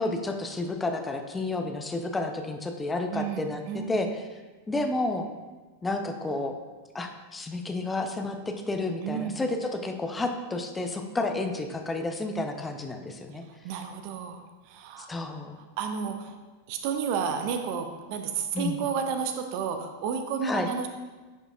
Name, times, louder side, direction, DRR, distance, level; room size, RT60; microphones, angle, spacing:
voice 1, 0.0-3.6 3.9-4.1 4.7-5.3 5.8-6.6 6.9-13.4 15.0-15.6 18.5-18.8 20.4-20.7, left 2 dB, 10° left, 5 dB, 0.7 m, -31 dB
voice 2, 3.1-4.0 9.0-9.4 13.3-15.1 15.8-16.4 16.7-20.9, right 6 dB, 45° right, 6 dB, 0.7 m, -32 dB
10.5 x 5.0 x 2.5 m, 1.3 s
figure-of-eight pair, 90°, 0 cm